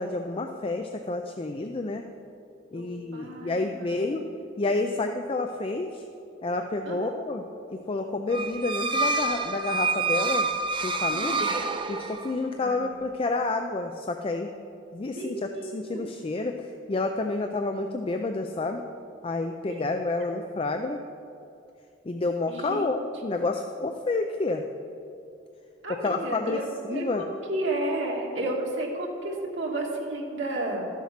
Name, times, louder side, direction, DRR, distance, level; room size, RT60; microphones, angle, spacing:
voice 1, 0.0-2.0 2.7-4.2 4.6-6.0 6.4-7.4 7.7-10.5 10.8-11.4 11.9-14.5 14.9-18.8 19.2-21.0 22.1-24.6 25.9-27.3, left 3 dB, 30° left, 5 dB, 0.4 m, -29 dB
voice 2, 2.7-4.1 6.9-7.1 11.1-11.5 12.6-12.9 15.0-16.1 19.6-19.9 22.5-22.9 25.8-30.8, right 1 dB, 90° right, -2 dB, 1.9 m, -32 dB
sound 1, 8.3-12.5, right 3 dB, 25° right, 0.5 m, -27 dB
13.0 x 7.2 x 5.8 m, 2.6 s
head